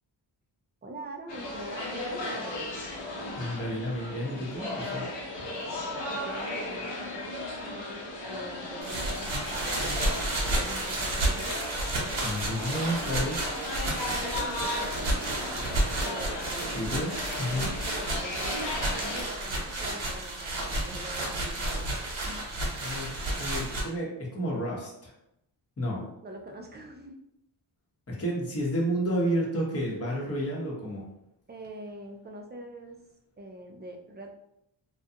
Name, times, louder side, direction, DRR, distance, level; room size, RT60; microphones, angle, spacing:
voice 1, 0.8-2.6 5.7-11.6 14.0-16.7 17.6-22.4 25.9-27.2 31.5-33.0 33.4-34.3, right 1 dB, 25° right, 3 dB, 0.4 m, -44 dB
sound 1, 1.3-19.2, left 1 dB, 65° left, 0.9 m, -36 dB
voice 2, 3.4-5.1 12.2-13.4 16.6-17.1 17.4-17.7 22.8-23.1 23.4-25.1 25.8-26.0 28.1-31.0, equal, 30° left, -4 dB, 1.0 m, -31 dB
sound 2, 8.8-23.8, right 1 dB, 65° right, 1.0 m, -31 dB
2.3 x 2.2 x 2.7 m, 0.80 s
cardioid pair, 65°, 47 cm